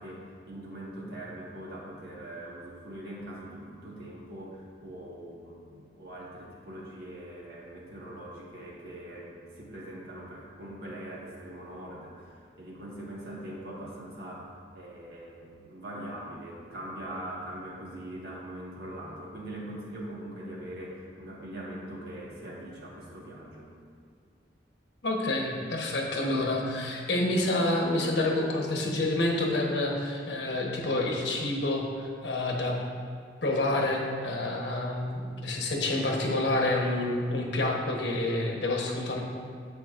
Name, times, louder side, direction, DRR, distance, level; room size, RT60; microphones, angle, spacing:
voice 1, 0.0-23.7, right 1 dB, 60° right, -4 dB, 1.7 m, -42 dB
voice 2, 25.0-32.8 33.4-39.2, left 2 dB, 75° left, 0 dB, 1.1 m, -28 dB
9.7 x 7.5 x 2.5 m, 2.1 s
head